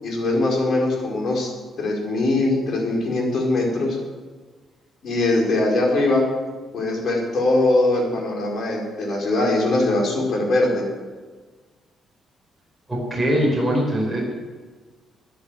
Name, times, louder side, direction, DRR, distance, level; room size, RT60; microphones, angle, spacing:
voice 1, 0.0-1.5 1.8-4.0 5.0-6.3 6.7-10.8, left 2 dB, 50° left, -1 dB, 4.6 m, -21 dB
voice 2, 12.9-14.3, equal, ahead, -4 dB, 5.1 m, -22 dB
14.0 x 10.0 x 7.8 m, 1.4 s
cardioid pair, 150°, 0 cm